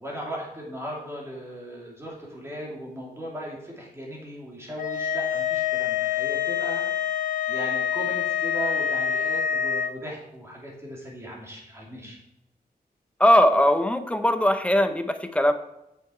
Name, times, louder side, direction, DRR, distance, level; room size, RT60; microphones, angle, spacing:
voice 1, 0.0-6.8 7.1-12.2, equal, 15° right, -3 dB, 2.7 m, -37 dB
sound 1, 4.8-9.9, left 9 dB, 55° left, 0.9 m, -26 dB
voice 2, 13.2-15.5, equal, 10° left, 8 dB, 0.7 m, -20 dB
9.3 x 7.0 x 4.4 m, 0.86 s
wide cardioid pair, 160°, 16 cm